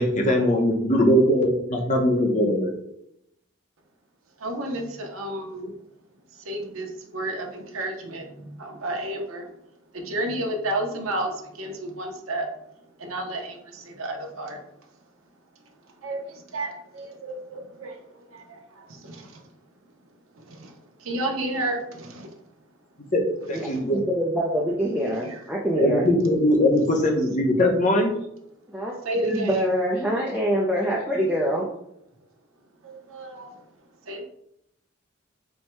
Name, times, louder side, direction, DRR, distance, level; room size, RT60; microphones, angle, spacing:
voice 1, 0.0-2.7 23.1-23.2 23.5-24.0 25.7-28.2, left 1 dB, 35° left, 1 dB, 0.8 m, -21 dB
voice 2, 4.4-5.8 6.4-9.5 9.9-12.5 13.0-14.6 16.0-19.4 20.4-22.3 23.5-23.8 25.1-25.4 29.0-29.7 32.8-33.6 34.1-34.2, right 1 dB, 85° right, 2 dB, 0.9 m, -32 dB
voice 3, 23.9-26.0 28.7-28.9 29.2-31.7, equal, 5° right, -4 dB, 0.5 m, -24 dB
4.4 x 2.2 x 4.4 m, 0.76 s
head